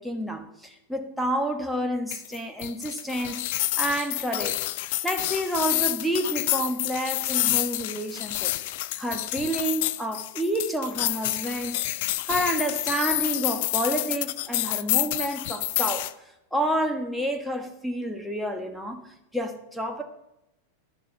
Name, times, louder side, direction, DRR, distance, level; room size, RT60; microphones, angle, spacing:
voice 1, 0.0-3.4 3.8-4.5 4.8-8.5 9.0-11.8 12.2-16.1 16.5-20.0, right 1 dB, ahead, 3 dB, 1.5 m, -29 dB
sound 1, 2.1-16.1, left 16 dB, 50° left, 0.5 m, -28 dB
12.0 x 7.0 x 5.7 m, 0.86 s
figure-of-eight pair, 90°, 0 cm